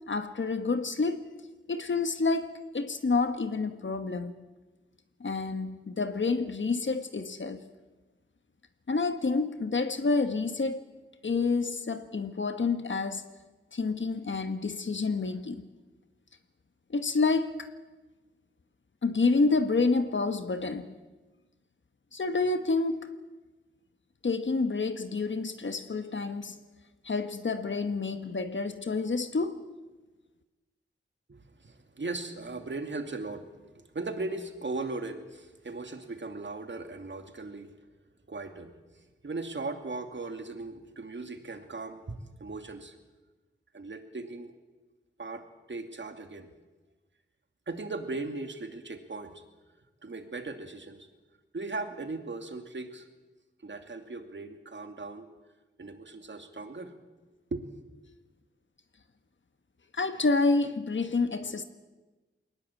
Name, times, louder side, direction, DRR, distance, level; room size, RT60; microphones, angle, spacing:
voice 1, 0.1-1.3 1.7-4.4 5.2-7.6 8.9-10.9 11.2-13.2 13.7-15.7 16.9-17.7 19.0-21.0 22.1-23.1 24.2-26.6 27.0-29.7 59.9-61.6, left 3 dB, 65° left, 1.4 m, -28 dB
voice 2, 31.3-37.7 38.3-43.0 43.7-44.5 45.2-46.5 47.7-49.4 50.0-51.1 51.5-53.1 53.6-55.3 55.8-56.9 57.5-57.7, right 3 dB, 60° right, 2.5 m, -38 dB
22.0 x 19.5 x 8.5 m
wide cardioid pair, 65°, 21 cm